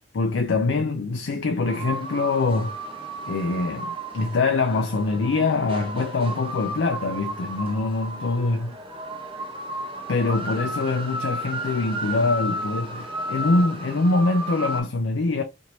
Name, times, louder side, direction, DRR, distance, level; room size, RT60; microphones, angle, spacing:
voice 1, 0.1-2.8 3.3-8.8 10.1-15.4, left 3 dB, 75° left, 0.4 m, -24 dB
sound 1, 1.6-14.8, right 1 dB, 25° right, 1.1 m, -33 dB
3.0 x 2.6 x 2.8 m
head